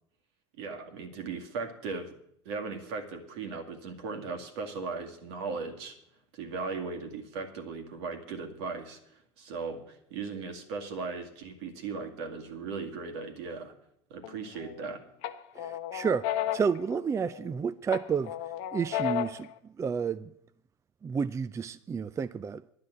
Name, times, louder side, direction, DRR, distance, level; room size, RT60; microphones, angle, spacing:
voice 1, 0.6-2.1 2.5-6.0 6.3-9.0 9.4-13.7 14.1-15.0, right 4 dB, 70° right, 2.1 m, -37 dB
sound 1, 14.2-14.8 15.2-17.5 17.9-19.5, left 11 dB, 65° left, 0.9 m, -34 dB
voice 2, 15.6-18.4 18.7-20.3 21.0-22.6, right 6 dB, 20° right, 0.4 m, -31 dB
10.5 x 9.5 x 7.8 m
hypercardioid pair, 80°, 14 cm